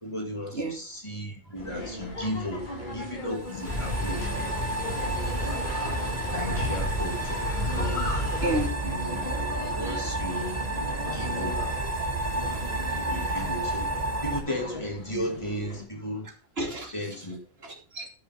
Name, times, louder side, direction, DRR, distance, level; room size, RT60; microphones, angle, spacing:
voice 1, 0.0-4.6 6.3-7.5 7.7-8.0 8.8-9.2 9.7-10.6 11.1-11.6 12.3-12.6 13.1-13.9 14.2-16.3 16.9-17.4, equal, 25° left, 2.4 m, -35 dB
sound 1, 1.5-15.8, left 1 dB, 45° left, 3.4 m, -38 dB
sound 2, 3.3-14.4, right 2 dB, 35° right, 1.6 m, -31 dB
sound 3, 3.6-8.7, left 1 dB, 70° left, 4.2 m, -32 dB
voice 2, 8.4-8.7 9.3-9.6 11.8-11.9 12.7-13.1 16.6-16.9 17.6-18.1, right 1 dB, 65° right, 3.1 m, -32 dB
12.0 x 6.8 x 4.4 m
omnidirectional pair, 1.1 m